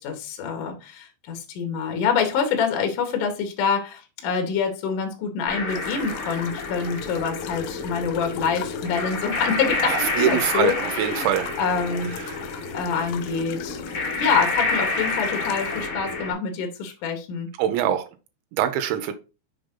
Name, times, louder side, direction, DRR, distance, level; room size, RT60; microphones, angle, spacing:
voice 1, 0.0-11.3 11.6-12.1 12.7-13.8 14.2-17.5, left 6 dB, 60° left, 4 dB, 2.3 m, -26 dB
sound 1, 5.5-16.3, left 3 dB, 40° left, 1.7 m, -29 dB
sound 2, 5.7-15.9, left 12 dB, 85° left, 2.9 m, -41 dB
voice 2, 9.8-11.6 12.1-12.4 17.6-18.1 18.5-19.1, right 11 dB, 85° right, 7 dB, 3.1 m, -24 dB
6.7 x 5.1 x 3.7 m, 0.31 s
omnidirectional pair, 5.2 m